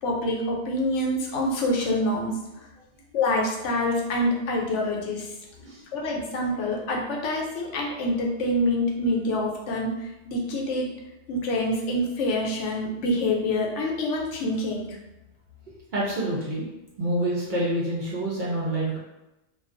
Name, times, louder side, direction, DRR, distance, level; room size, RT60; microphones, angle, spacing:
voice 1, 0.0-2.3 3.1-5.3 5.9-10.9 11.3-15.0, left 1 dB, 85° left, -1 dB, 0.9 m, -26 dB
voice 2, 15.9-16.6 17.0-19.0, right 1 dB, 55° right, -5 dB, 0.6 m, -27 dB
2.3 x 2.2 x 2.4 m, 0.95 s
omnidirectional pair, 1.2 m